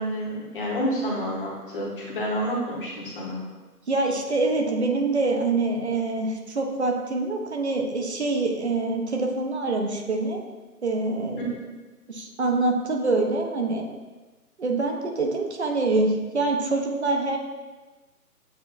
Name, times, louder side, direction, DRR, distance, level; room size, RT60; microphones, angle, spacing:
voice 1, 0.0-3.4, equal, 35° left, -4 dB, 1.3 m, -29 dB
voice 2, 3.9-10.4 10.8-11.5 12.1-13.8 14.6-17.4, right 3 dB, 45° right, 2 dB, 0.7 m, -25 dB
8.0 x 2.7 x 2.5 m, 1.2 s
figure-of-eight pair, 155°, 47 cm